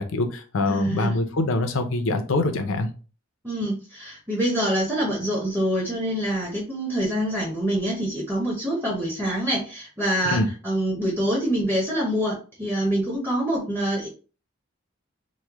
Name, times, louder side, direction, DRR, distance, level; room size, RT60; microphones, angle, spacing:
voice 1, 0.0-2.9 10.2-10.5, left 2 dB, 75° left, 6 dB, 0.5 m, -24 dB
voice 2, 0.7-1.2 3.4-14.1, right 1 dB, 10° right, -4 dB, 0.6 m, -25 dB
3.1 x 2.1 x 3.4 m, 0.36 s
head